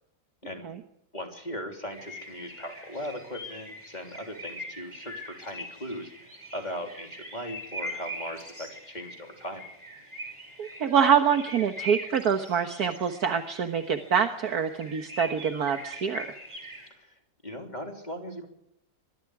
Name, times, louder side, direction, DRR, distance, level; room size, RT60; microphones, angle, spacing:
voice 1, 1.1-9.6 16.9-18.5, equal, 25° left, 3 dB, 3.4 m, -39 dB
sound 1, 1.9-16.9, right 1 dB, 15° right, 5.9 m, -42 dB
voice 2, 10.6-16.3, right 7 dB, 65° right, 7 dB, 1.8 m, -25 dB
24.5 x 22.5 x 4.9 m, 0.80 s
omnidirectional pair, 1.8 m